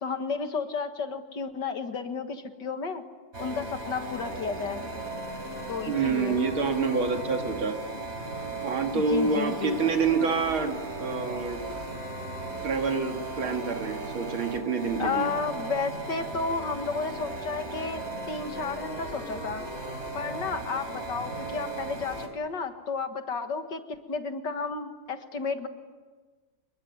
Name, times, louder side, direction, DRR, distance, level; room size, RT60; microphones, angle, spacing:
voice 1, 0.0-3.0 3.4-4.9 5.7-6.4 8.9-9.8 15.0-18.0 18.3-19.6 20.1-25.7, left 5 dB, 55° left, 7 dB, 2.2 m, -32 dB
sound 1, 3.3-22.3, right 2 dB, 30° right, 3.9 m, -37 dB
voice 2, 5.9-7.7 8.6-11.6 12.6-15.3, right 4 dB, 75° right, 4 dB, 3.2 m, -27 dB
27.0 x 22.5 x 9.7 m, 1.4 s
omnidirectional pair, 2.3 m